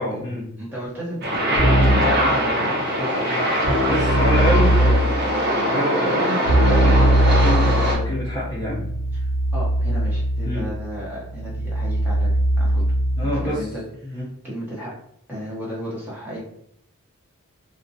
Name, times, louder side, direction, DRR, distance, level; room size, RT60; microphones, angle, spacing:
voice 1, 0.0-0.5 3.8-4.7 5.6-8.8 10.4-10.7 13.2-13.7 14.0-14.3, equal, 15° left, -8 dB, 0.4 m, -26 dB
voice 2, 0.6-3.6 4.3-5.2 9.2-12.9 13.2-13.8 14.1-14.9 15.3-16.4, equal, 10° right, -7 dB, 0.8 m, -33 dB
sound 1, 1.2-8.0, equal, 45° right, 0.5 m, -22 dB
Keyboard (musical), 1.5-2.2 3.6-5.2 6.4-13.5, right 1 dB, 60° right, 0.9 m, -20 dB
2.4 x 2.1 x 2.5 m, 0.70 s
head